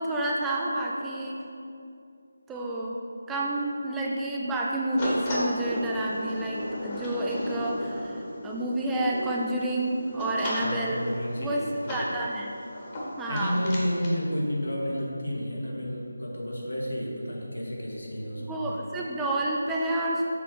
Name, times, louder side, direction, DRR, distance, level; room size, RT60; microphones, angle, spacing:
voice 1, 0.0-1.4 2.5-3.0 3.3-11.0 11.4-11.6 11.9-12.5 13.2-13.6 18.5-20.3, right 1 dB, 5° right, -3 dB, 0.4 m, -29 dB
sound 1, 5.0-14.2, equal, 25° left, 1.2 m, -34 dB
voice 2, 10.6-11.7 13.3-18.6, equal, 85° left, -3 dB, 1.5 m, -31 dB
6.8 x 3.7 x 5.0 m, 2.6 s
figure-of-eight pair, 160°, 0 cm